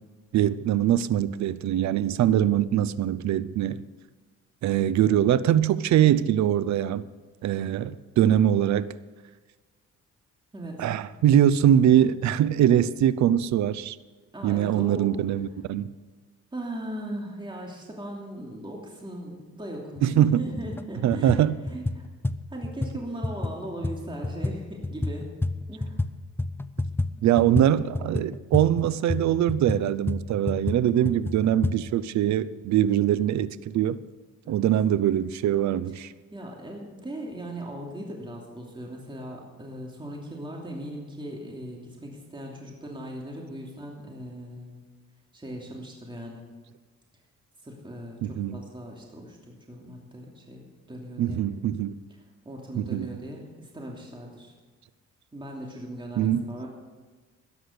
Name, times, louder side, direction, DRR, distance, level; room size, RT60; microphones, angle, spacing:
voice 1, 0.3-3.8 4.6-7.0 7.4-8.9 10.8-14.0 14.4-15.9 20.0-20.4 21.0-21.6 27.2-34.0 34.5-36.1 48.2-48.6 51.2-52.0 52.7-53.2 56.2-56.5, right 11 dB, 70° right, 0.6 m, -22 dB
voice 2, 10.5-10.9 14.3-15.1 16.5-22.0 22.5-25.3 25.7-26.0 31.0-31.2 34.4-34.7 35.9-36.0 36.3-44.8 45.3-46.4 47.6-51.4 52.4-54.5 55.3-56.7, right 1 dB, 15° right, 2.8 m, -38 dB
sound 1, 20.0-20.1 20.5-20.9 21.1-26.1 26.4-31.8, left 2 dB, 10° left, 0.5 m, -30 dB
13.5 x 10.0 x 6.7 m
cardioid pair, 90°, 30 cm